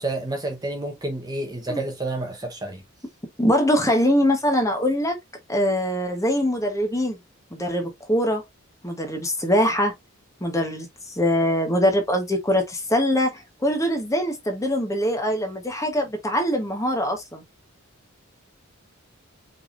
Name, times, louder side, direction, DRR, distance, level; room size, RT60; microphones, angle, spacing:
voice 1, 0.0-2.8, right 2 dB, 20° right, 0.9 m, -29 dB
voice 2, 3.4-5.2 5.5-7.2 7.5-8.4 8.8-9.9 10.4-17.4, equal, 15° left, 1.1 m, -23 dB
5.1 x 3.5 x 2.5 m
head